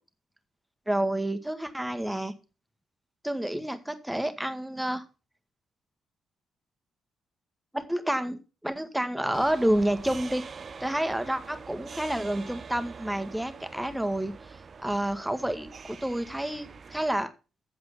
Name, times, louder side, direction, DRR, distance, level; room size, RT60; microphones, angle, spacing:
voice 1, 0.9-2.4 3.2-5.0 7.7-8.4 8.6-10.4 10.8-14.3 14.8-17.3, right 1 dB, 5° right, 10 dB, 1.3 m, -29 dB
sound 1, 9.3-17.3, right 5 dB, 40° right, 0.5 m, -44 dB
7.9 x 7.6 x 5.8 m, 0.32 s
figure-of-eight pair, 40°, 0 cm